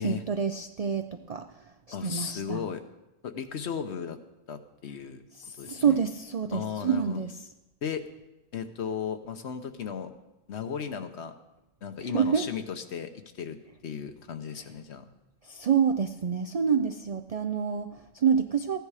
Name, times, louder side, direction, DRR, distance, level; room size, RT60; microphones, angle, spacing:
voice 1, 0.0-1.5 2.0-2.6 5.4-7.3 12.0-12.4 15.5-18.8, right 7 dB, 80° right, 8 dB, 0.3 m, -27 dB
voice 2, 1.9-2.8 3.2-4.2 4.5-5.2 5.6-6.0 6.5-7.2 7.8-8.0 8.5-10.1 10.5-11.3 11.8-13.6 13.8-15.1, left 7 dB, 65° left, 9 dB, 1.1 m, -35 dB
15.0 x 9.9 x 4.8 m, 0.96 s
omnidirectional pair, 1.3 m